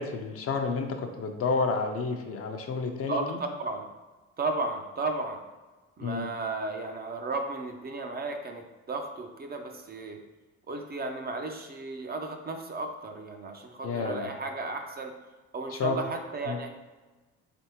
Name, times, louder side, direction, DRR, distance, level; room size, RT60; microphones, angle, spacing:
voice 1, 0.0-3.4 6.0-6.3 13.8-14.3 15.8-16.0 16.5-16.6, left 4 dB, 50° left, 4 dB, 0.6 m, -30 dB
voice 2, 3.6-3.9 4.4-5.4 6.0-10.2 10.7-15.1 15.5-16.7, right 3 dB, 30° right, 4 dB, 0.5 m, -34 dB
3.6 x 3.4 x 2.9 m, 1.2 s
cardioid pair, 90°, 30 cm